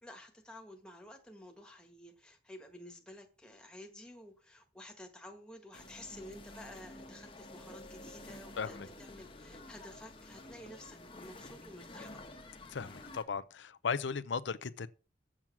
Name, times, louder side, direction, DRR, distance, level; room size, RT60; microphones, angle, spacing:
voice 1, 0.0-12.5, left 1 dB, 5° left, 1.5 m, -52 dB
sound 1, 5.7-13.2, left 2 dB, 30° left, 1.1 m, -50 dB
voice 2, 8.6-8.9 12.7-14.9, left 5 dB, 85° left, 0.6 m, -36 dB
7.4 x 7.3 x 6.1 m
head